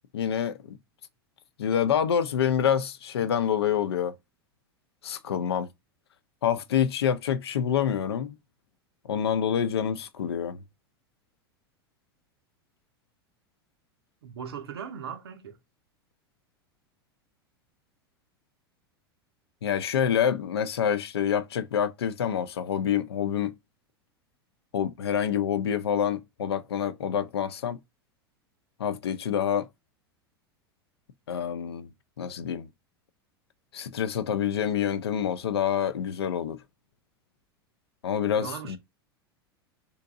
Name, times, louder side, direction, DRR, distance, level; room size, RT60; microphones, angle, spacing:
voice 1, 0.1-0.8 1.6-4.1 5.0-5.7 6.4-8.3 9.0-10.6 19.6-23.5 24.7-27.8 28.8-29.7 31.3-31.9 32.2-32.7 33.7-36.6 38.0-38.8, left 8 dB, 80° left, 0.5 m, -27 dB
voice 2, 14.2-15.6 38.4-38.8, right 7 dB, 75° right, 0.7 m, -38 dB
3.6 x 2.7 x 2.4 m
hypercardioid pair, 90°, 13 cm